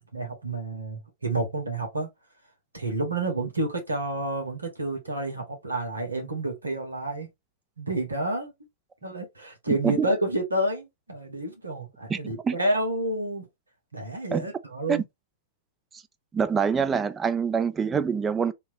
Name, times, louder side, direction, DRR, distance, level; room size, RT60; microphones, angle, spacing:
voice 1, 0.0-2.1 2.7-7.3 7.8-8.5 9.0-13.5 13.9-15.0, right 2 dB, 85° right, 1.2 m, -29 dB
voice 2, 9.7-10.1 12.1-12.6 14.3-14.5 14.9-15.0 15.9-16.0 16.3-18.5, right 6 dB, 20° right, 0.3 m, -25 dB
3.5 x 2.8 x 2.8 m
figure-of-eight pair, 100°, 0 cm